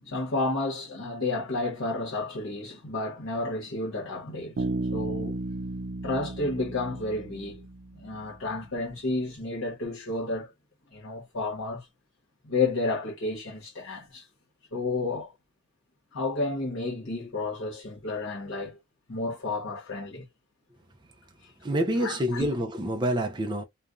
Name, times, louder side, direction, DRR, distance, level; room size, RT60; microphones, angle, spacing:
voice 1, 0.0-4.6 4.9-5.4 6.0-7.6 7.9-10.5 10.9-11.9 12.4-14.2 14.7-15.3 16.1-18.8 19.1-20.3 22.0-22.5, left 2 dB, 85° left, 1.2 m, -31 dB
Bass guitar, 4.6-8.3, right 2 dB, 80° right, 0.5 m, -34 dB
voice 2, 21.6-23.6, right 1 dB, 25° right, 0.5 m, -27 dB
3.2 x 2.2 x 2.5 m
head